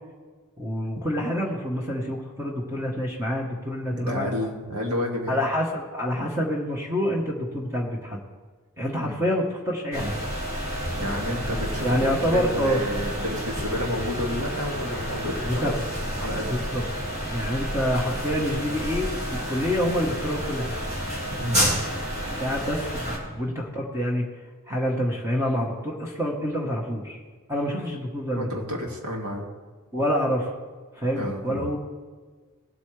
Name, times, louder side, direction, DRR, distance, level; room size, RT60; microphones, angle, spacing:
voice 1, 0.6-4.4 5.3-8.2 8.8-10.2 11.8-12.8 15.4-15.7 16.5-16.9 17.3-20.8 22.2-24.3 24.7-27.2 27.5-28.5 29.9-30.5 30.9-31.8, equal, 15° right, -1 dB, 1.2 m, -27 dB
voice 2, 3.9-5.4 8.9-9.2 10.9-16.6 21.4-21.7 28.4-29.5 31.1-31.7, left 1 dB, 80° right, 0 dB, 2.1 m, -30 dB
sound 1, 9.9-23.2, equal, 30° right, 2.4 m, -30 dB
17.5 x 8.1 x 3.3 m, 1.4 s
head